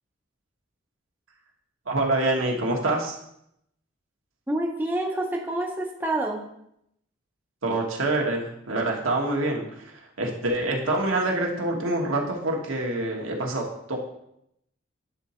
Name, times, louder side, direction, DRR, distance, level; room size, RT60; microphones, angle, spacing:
voice 1, 1.9-3.2 7.6-14.0, right 2 dB, 80° right, 0 dB, 1.3 m, -26 dB
voice 2, 4.5-6.5, right 1 dB, 10° right, 1 dB, 0.5 m, -27 dB
8.0 x 3.9 x 4.2 m, 0.78 s
head